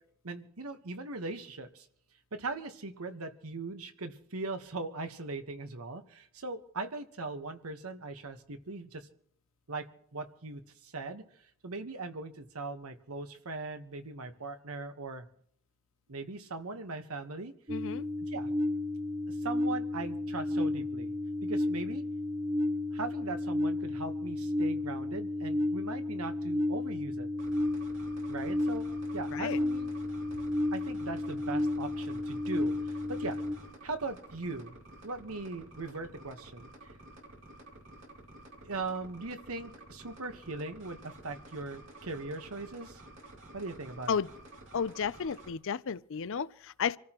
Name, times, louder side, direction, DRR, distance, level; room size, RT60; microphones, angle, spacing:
voice 1, 0.2-1.9 2.3-9.1 9.7-9.9 10.1-11.2 11.6-15.3 16.1-17.5 18.3-18.5 19.3-21.1 21.4-22.0 22.9-27.3 28.3-28.9 29.1-29.9 30.7-33.4 33.8-34.8 35.0-36.9 38.6-43.0 43.5-44.2, right 3 dB, 90° right, 1.3 m, -40 dB
voice 2, 17.7-18.0 29.3-29.6 44.1-44.3 44.7-47.0, left 6 dB, 65° left, 0.5 m, -33 dB
sound 1, 17.7-33.6, left 1 dB, 30° right, 2.3 m, -32 dB
sound 2, 27.4-45.5, right 1 dB, 65° right, 2.6 m, -51 dB
27.0 x 14.0 x 3.0 m
head